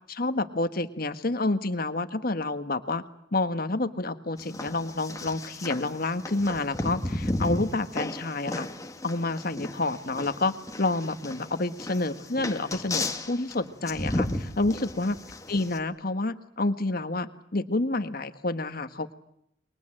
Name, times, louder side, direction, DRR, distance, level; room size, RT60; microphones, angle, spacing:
voice 1, 0.1-3.0 3.3-8.7 9.0-15.1 15.5-19.1, left 2 dB, 50° left, 9 dB, 1.5 m, -29 dB
sound 1, 4.4-15.8, left 1 dB, 15° left, 1.7 m, -34 dB
29.5 x 23.0 x 7.8 m, 0.76 s
head